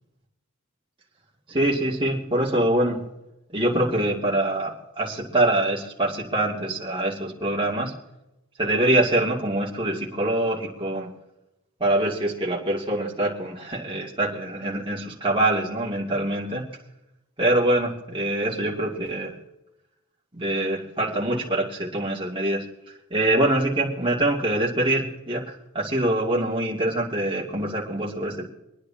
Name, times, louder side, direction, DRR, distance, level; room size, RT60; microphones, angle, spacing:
voice 1, 1.5-3.0 3.5-7.9 8.6-11.1 11.8-16.6 17.4-19.3 20.3-22.6 23.1-28.5, right 1 dB, 25° right, -4 dB, 2.4 m, -24 dB
26.5 x 10.0 x 2.9 m, 0.93 s
head